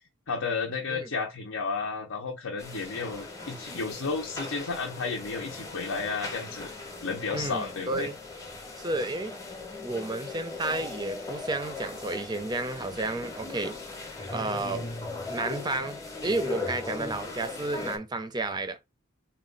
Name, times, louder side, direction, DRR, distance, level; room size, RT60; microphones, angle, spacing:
voice 1, 0.3-6.7 7.0-8.1, left 4 dB, 80° left, 0.7 m, -32 dB
sound 1, 2.6-18.0, left 3 dB, 15° left, 0.7 m, -39 dB
voice 2, 7.3-8.2 8.8-9.3 9.8-13.8 14.3-14.9 15.3-18.8, right 2 dB, 20° right, 0.4 m, -32 dB
4.2 x 2.2 x 3.8 m
head